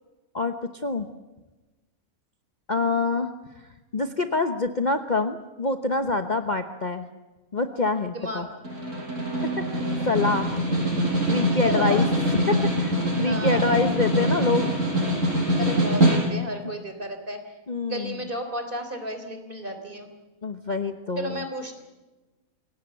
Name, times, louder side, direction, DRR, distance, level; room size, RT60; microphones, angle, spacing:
voice 1, 0.3-1.1 2.7-3.3 3.9-7.1 7.5-8.5 9.4-10.5 11.3-12.1 12.5-14.7 17.7-18.2 20.4-21.4, left 3 dB, 35° left, 7 dB, 1.1 m, -26 dB
voice 2, 8.1-8.4 11.6-12.2 13.2-13.8 15.6-17.5 17.9-20.1 21.2-21.8, equal, 35° right, 6 dB, 3.7 m, -33 dB
Snare drum, 8.6-16.6, equal, 60° right, 7.1 m, -24 dB
26.0 x 18.5 x 8.2 m, 1.2 s
omnidirectional pair, 1.5 m